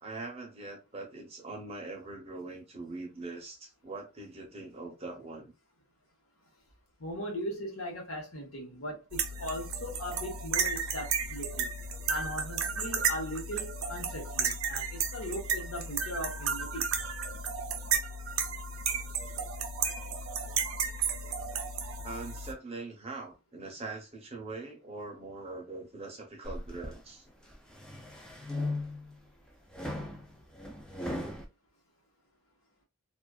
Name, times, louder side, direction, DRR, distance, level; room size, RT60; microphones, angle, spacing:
voice 1, 0.0-5.5 22.0-27.2, right 3 dB, 30° right, 0.6 m, -42 dB
voice 2, 7.0-11.7 12.1-16.9, equal, 85° left, 1.0 m, -39 dB
sound 1, 9.1-22.5, right 5 dB, 85° right, 0.5 m, -33 dB
sound 2, 26.4-27.0 27.5-29.1 29.7-31.5, left 2 dB, 5° left, 0.3 m, -37 dB
2.3 x 2.3 x 2.3 m
head